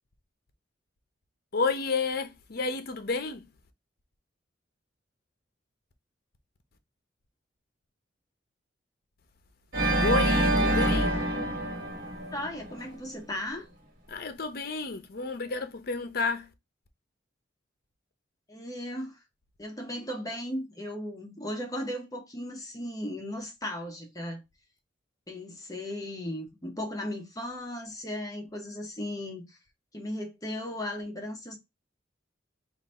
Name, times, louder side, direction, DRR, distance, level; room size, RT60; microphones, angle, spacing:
voice 1, 1.5-3.5 10.0-11.2 14.1-16.5, left 4 dB, 55° left, 0.8 m, -31 dB
Organ, 9.7-12.8, right 1 dB, 55° right, 1.6 m, -26 dB
voice 2, 12.3-13.7 18.5-19.2 19.6-24.4 25.3-29.6 29.9-31.6, left 1 dB, 20° left, 0.9 m, -36 dB
3.9 x 2.6 x 4.2 m
head